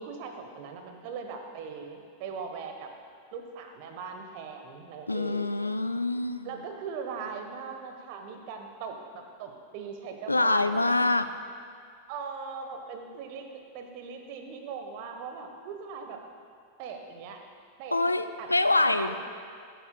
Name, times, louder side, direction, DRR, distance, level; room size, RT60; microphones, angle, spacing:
voice 1, 0.0-2.9 3.3-5.5 6.4-11.1 12.1-16.2 16.8-17.4 17.8-18.0 18.4-19.2, right 5 dB, 45° right, 5 dB, 1.0 m, -40 dB
voice 2, 5.1-6.5 10.3-11.3 17.9-19.2, left 2 dB, 85° left, 10 dB, 0.4 m, -25 dB
15.5 x 9.1 x 2.2 m, 2.2 s
figure-of-eight pair, 90°, 0 cm